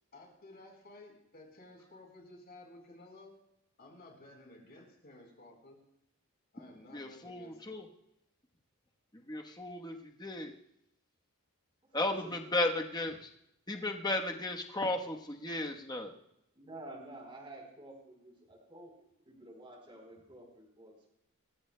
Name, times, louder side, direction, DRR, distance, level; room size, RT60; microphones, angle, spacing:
voice 1, 0.1-3.3 3.8-5.8 6.5-7.8, left 2 dB, 45° left, 1 dB, 4.1 m, -54 dB
voice 2, 6.9-7.8 9.3-10.5 11.9-13.3 13.7-16.1, left 2 dB, 20° left, 2 dB, 1.1 m, -35 dB
voice 3, 11.8-12.3 16.6-21.1, right 1 dB, 25° right, 0 dB, 3.8 m, -50 dB
27.5 x 15.0 x 2.2 m, 0.80 s
head